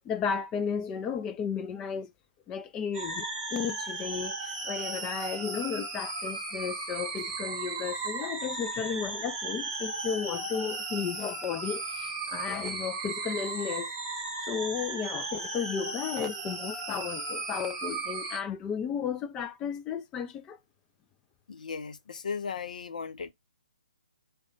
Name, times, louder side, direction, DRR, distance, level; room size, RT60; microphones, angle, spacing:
voice 1, 0.0-2.1 2.5-3.3 3.5-4.4 4.6-13.9 14.5-20.6, left 7 dB, 15° left, 0.4 m, -34 dB
sound 1, 2.9-18.4, right 3 dB, 20° right, 1.7 m, -36 dB
voice 2, 21.5-23.3, left 5 dB, 60° left, 0.6 m, -36 dB
4.8 x 2.2 x 3.8 m
figure-of-eight pair, 145°, 5 cm